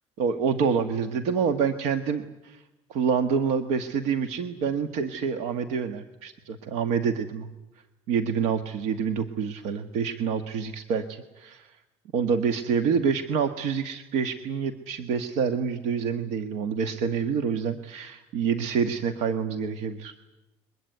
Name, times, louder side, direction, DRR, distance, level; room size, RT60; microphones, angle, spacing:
voice 1, 0.2-2.6 2.9-7.5 8.1-11.7 12.1-20.1, right 6 dB, 80° right, 9 dB, 1.4 m, -27 dB
22.0 x 22.0 x 9.4 m, 1.0 s
cardioid pair, 135°, 11 cm